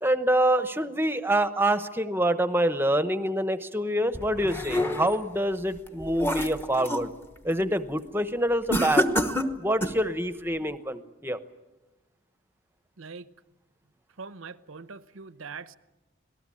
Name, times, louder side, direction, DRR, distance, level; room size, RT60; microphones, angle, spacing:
voice 1, 0.0-7.1 7.4-9.1 9.6-11.4, right 1 dB, 10° right, 0.9 m, -26 dB
sound 1, 4.1-5.3 5.8-7.1 7.5-7.8 8.7-10.1, equal, 10° left, 1.1 m, -28 dB
voice 2, 13.0-13.3 14.2-15.8, right 5 dB, 80° right, 0.9 m, -42 dB
26.0 x 18.5 x 8.6 m
head